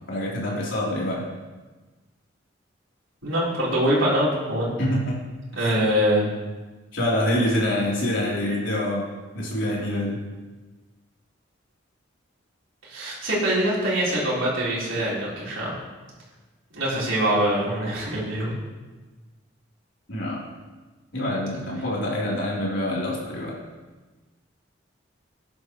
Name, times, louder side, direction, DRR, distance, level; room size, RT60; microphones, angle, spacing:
voice 1, 0.1-1.2 4.8-5.2 5.5-5.8 6.9-9.1 9.3-10.2 20.1-20.4 21.1-23.6, left 1 dB, 80° left, -5 dB, 3.5 m, -26 dB
voice 2, 3.2-4.7 5.6-6.2 12.8-15.8 16.7-18.6, equal, 85° right, -7 dB, 4.0 m, -24 dB
14.0 x 10.5 x 3.1 m, 1.2 s
head